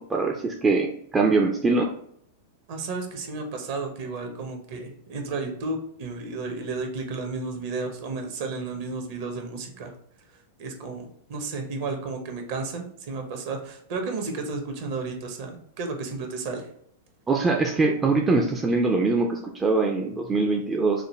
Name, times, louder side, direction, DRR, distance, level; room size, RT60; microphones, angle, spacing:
voice 1, 0.0-1.9 17.3-21.1, right 3 dB, 15° right, 1 dB, 0.5 m, -23 dB
voice 2, 2.7-9.9 10.6-16.7, right 3 dB, 50° right, 4 dB, 0.9 m, -32 dB
4.9 x 2.2 x 3.1 m, 0.69 s
figure-of-eight pair, 95°, 0 cm